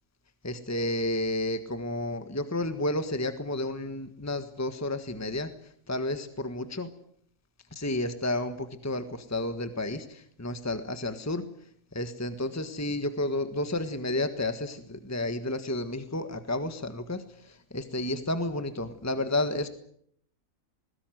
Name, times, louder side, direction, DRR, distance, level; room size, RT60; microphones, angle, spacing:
voice 1, 0.4-6.9 7.7-11.4 11.9-19.7, left 1 dB, 10° left, 9 dB, 1.5 m, -31 dB
21.5 x 20.0 x 9.3 m, 0.68 s
omnidirectional pair, 1.4 m